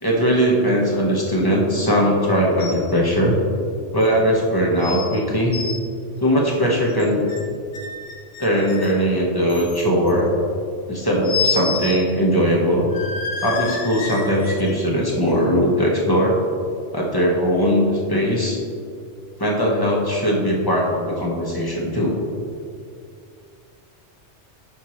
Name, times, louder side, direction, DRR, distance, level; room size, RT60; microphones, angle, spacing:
voice 1, 0.0-3.4 3.9-5.5 6.2-7.3 8.4-10.3 10.9-12.9 13.4-16.4 16.9-18.6 19.4-22.2, equal, 20° left, -3 dB, 1.2 m, -19 dB
sound 1, 2.6-2.9 3.2-3.3 4.0-4.1 4.8-5.1 5.4-5.8 6.9-7.4 7.7-9.0 9.5-10.1 11.2-12.0 12.3-12.4 12.9-14.7 15.3-15.4, left 4 dB, 90° left, 1.3 m, -28 dB
9.2 x 6.0 x 3.1 m, 2.3 s
omnidirectional pair, 1.2 m